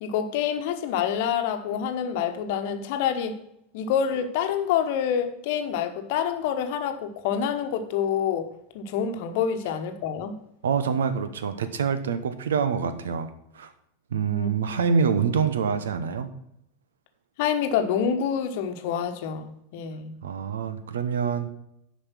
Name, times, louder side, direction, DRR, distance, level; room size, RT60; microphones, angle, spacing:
voice 1, 0.0-3.3 3.7-8.5 8.7-10.3 14.3-14.5 17.4-20.1, left 8 dB, 55° left, 7 dB, 1.1 m, -27 dB
voice 2, 10.6-13.3 13.5-13.7 14.1-16.3 20.2-21.5, right 6 dB, 70° right, 12 dB, 0.8 m, -26 dB
9.9 x 5.4 x 5.9 m, 0.77 s
figure-of-eight pair, 85°, 0 cm